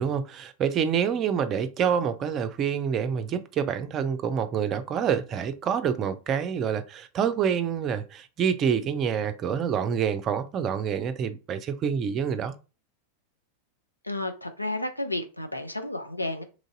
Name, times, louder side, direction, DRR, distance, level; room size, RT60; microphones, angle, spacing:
voice 1, 0.0-12.5, right 7 dB, 30° right, 0.5 m, -27 dB
voice 2, 14.0-16.4, left 1 dB, 85° left, 0.5 m, -32 dB
3.0 x 2.6 x 3.8 m
figure-of-eight pair, 90°, 0 cm